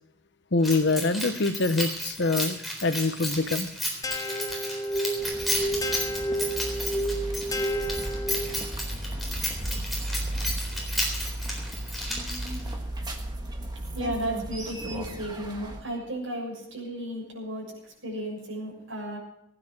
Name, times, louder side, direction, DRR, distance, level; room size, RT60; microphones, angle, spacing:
voice 1, 0.5-3.7, left 3 dB, 55° left, 11 dB, 0.8 m, -25 dB
Keys jangling, 0.6-12.8, equal, ahead, 3.9 m, -33 dB
sound 1, 4.0-8.8, right 1 dB, 15° left, 0.9 m, -30 dB
sound 2, 5.2-15.8, right 1 dB, 20° right, 1.5 m, -35 dB
voice 2, 13.9-19.2, right 1 dB, 70° right, -1 dB, 6.7 m, -34 dB
18.5 x 10.0 x 6.0 m, 0.79 s
head